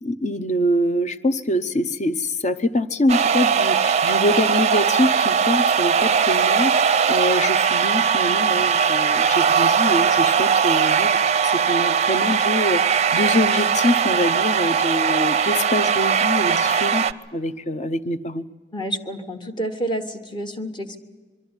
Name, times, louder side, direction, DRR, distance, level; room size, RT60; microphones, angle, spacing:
voice 1, 0.0-17.0 17.3-18.4, left 1 dB, 40° left, 12 dB, 0.8 m, -24 dB
sound 1, 3.1-17.1, right 6 dB, 40° right, 0.5 m, -19 dB
voice 2, 18.7-21.0, right 1 dB, 25° left, 6 dB, 1.4 m, -29 dB
23.5 x 13.0 x 9.7 m, 1.5 s
head